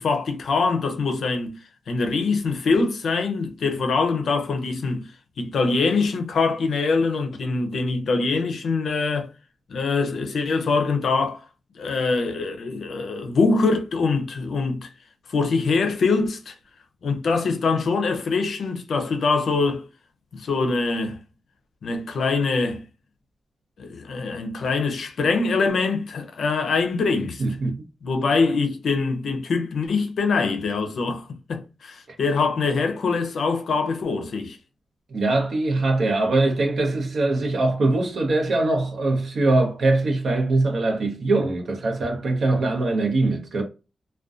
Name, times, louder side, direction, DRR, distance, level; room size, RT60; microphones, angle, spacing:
voice 1, 0.0-1.6 1.9-5.1 5.4-9.3 9.7-11.4 11.7-14.9 15.3-16.5 17.0-19.9 20.3-21.2 21.8-22.8 23.8-27.4 28.0-34.6, left 4 dB, 75° left, 0.4 m, -23 dB
voice 2, 27.4-27.8 32.1-32.2 35.1-43.6, right 2 dB, 65° right, 0.6 m, -22 dB
2.5 x 2.1 x 2.3 m
wide cardioid pair, 125°, 0 cm